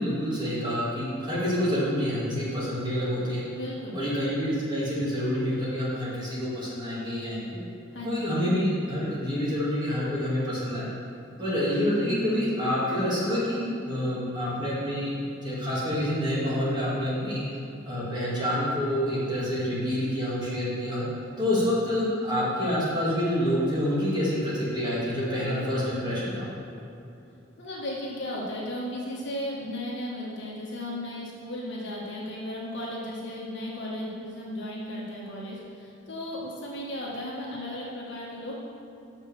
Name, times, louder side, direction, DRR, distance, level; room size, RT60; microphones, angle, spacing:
voice 1, 0.0-3.4 3.9-7.6 8.0-10.9 11.4-17.4 17.9-21.1 21.4-26.5, equal, 20° right, -8 dB, 2.1 m, -27 dB
voice 2, 3.6-4.0 7.9-8.3 27.6-38.6, left 1 dB, 60° left, -5 dB, 1.8 m, -35 dB
6.8 x 5.8 x 6.9 m, 2.8 s
head